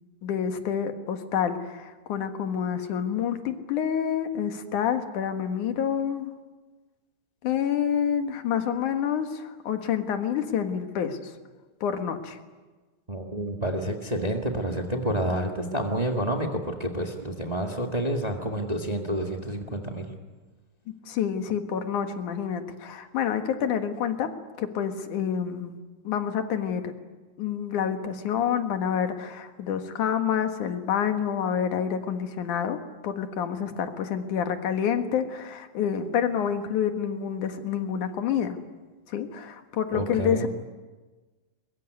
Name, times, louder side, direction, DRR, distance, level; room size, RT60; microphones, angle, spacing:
voice 1, 0.2-6.3 7.4-11.3 11.8-12.4 21.1-24.3 24.6-25.8 26.0-26.9 27.4-38.6 39.1-40.5, left 8 dB, 85° left, 7 dB, 3.2 m, -28 dB
voice 2, 13.1-20.1 39.9-40.5, right 1 dB, 15° right, 3 dB, 1.4 m, -29 dB
22.5 x 22.5 x 9.5 m, 1.3 s
omnidirectional pair, 3.4 m